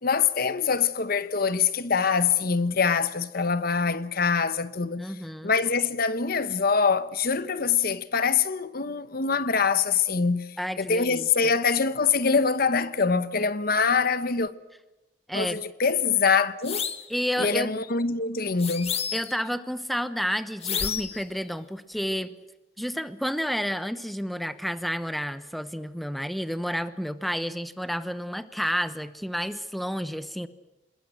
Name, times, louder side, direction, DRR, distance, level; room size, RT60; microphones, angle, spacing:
voice 1, 0.0-5.1 5.4-10.5 10.8-14.5 15.3-16.9 17.4-18.9, left 5 dB, 50° left, 1.0 m, -24 dB
voice 2, 5.0-5.5 10.6-11.5 15.3-15.6 17.1-17.7 19.1-22.3 22.8-30.5, equal, ahead, 0.9 m, -30 dB
sound 1, 16.6-17.1 18.6-19.4 20.6-21.2, left 7 dB, 35° left, 1.6 m, -30 dB
26.5 x 21.5 x 7.8 m
head